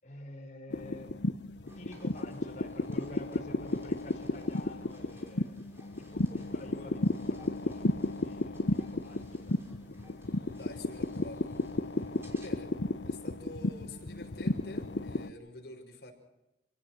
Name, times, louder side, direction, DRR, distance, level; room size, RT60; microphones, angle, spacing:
voice 1, 0.0-1.1 1.7-5.6 6.0-9.6, left 1 dB, 45° left, 1 dB, 6.2 m, -48 dB
sound 1, 0.7-15.3, left 2 dB, 85° left, 0.9 m, -33 dB
sound 2, 1.6-12.5, equal, 15° right, 5.9 m, -59 dB
voice 2, 10.5-11.5 12.4-12.7 13.0-16.1, left 2 dB, 60° left, 1 dB, 6.6 m, -47 dB
29.0 x 18.5 x 6.4 m, 0.89 s
head